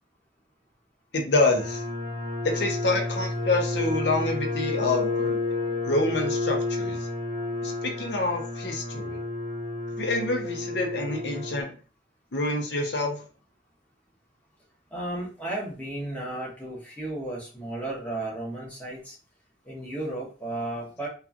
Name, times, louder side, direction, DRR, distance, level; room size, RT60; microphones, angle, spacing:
voice 1, 1.1-1.8 2.4-5.4 5.8-7.0 7.6-9.2 10.0-11.7 12.3-13.2, left 2 dB, 70° left, 2 dB, 0.7 m, -27 dB
sound 1, 1.6-11.6, left 2 dB, 55° right, 0.7 m, -30 dB
voice 2, 14.9-19.1 19.7-21.1, right 1 dB, 10° left, -5 dB, 0.9 m, -34 dB
2.9 x 2.4 x 2.4 m, 0.36 s
head